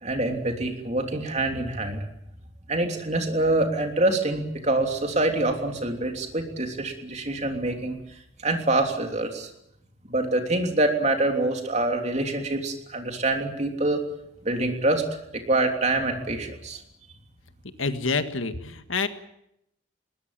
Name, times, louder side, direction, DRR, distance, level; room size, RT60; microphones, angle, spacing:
voice 1, 0.0-2.0 2.7-8.0 8.4-9.5 10.1-14.0 14.4-15.0 15.3-16.8, right 2 dB, 35° right, 4 dB, 3.2 m, -25 dB
voice 2, 17.8-19.1, left 4 dB, 90° left, 9 dB, 1.7 m, -27 dB
21.0 x 19.5 x 8.9 m, 0.79 s
head